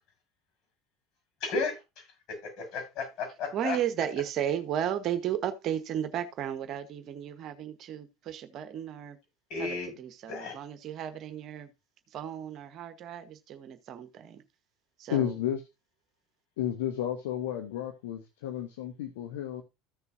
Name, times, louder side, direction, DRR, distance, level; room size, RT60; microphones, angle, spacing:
voice 1, 1.4-1.8 2.4-3.8 9.5-9.9 10.3-10.5, left 4 dB, 50° left, 6.7 m, -33 dB
voice 2, 3.5-9.2 9.6-11.7 12.1-14.4 15.0-15.4, right 10 dB, 45° right, 1.2 m, -34 dB
voice 3, 15.1-15.6 16.6-19.6, left 11 dB, 65° left, 1.1 m, -32 dB
14.5 x 6.8 x 2.7 m
figure-of-eight pair, 70°, 0 cm